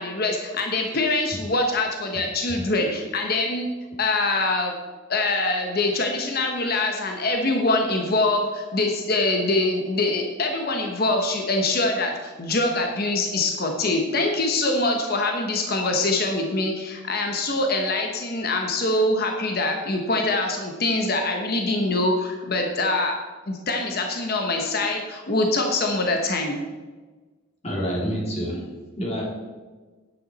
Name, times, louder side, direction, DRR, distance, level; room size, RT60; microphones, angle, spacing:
voice 1, 0.0-3.7 4.0-4.7 5.1-23.1 23.5-26.6, left 2 dB, 45° left, 2 dB, 1.1 m, -24 dB
voice 2, 27.6-29.2, equal, 30° left, -2 dB, 2.6 m, -28 dB
10.5 x 10.0 x 4.2 m, 1.3 s
head